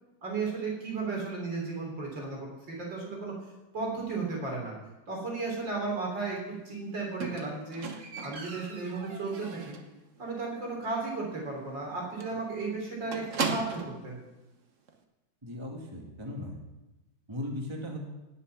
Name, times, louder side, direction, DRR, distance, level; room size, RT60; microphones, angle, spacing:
voice 1, 0.2-3.3 3.7-4.7 5.1-7.8 8.2-9.8 10.2-14.2, right 3 dB, 60° right, -1 dB, 4.5 m, -34 dB
Squeak, 7.2-10.0 10.3-10.7 11.0-11.1 11.5-11.6 11.8-12.0 12.2-14.0 14.9-15.0, right 4 dB, 45° right, 1.2 m, -37 dB
voice 2, 15.4-16.6 17.3-18.0, left 1 dB, 15° right, 1 dB, 1.4 m, -37 dB
18.0 x 7.0 x 6.0 m, 1.0 s
omnidirectional pair, 2.2 m